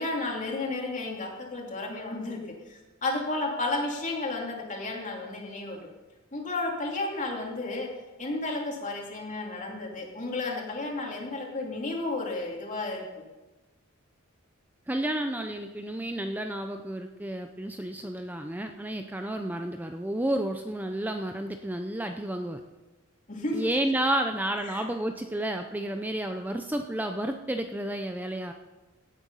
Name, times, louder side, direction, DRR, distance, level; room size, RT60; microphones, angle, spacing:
voice 1, 0.0-2.4 2.7-5.8 6.3-7.9 8.2-13.0 23.3-23.7 24.7-24.8, left 2 dB, 40° left, -1 dB, 2.9 m, -32 dB
voice 2, 14.9-22.6 23.5-28.5, right 1 dB, 10° right, 5 dB, 0.6 m, -31 dB
17.5 x 8.8 x 5.5 m, 1.1 s
head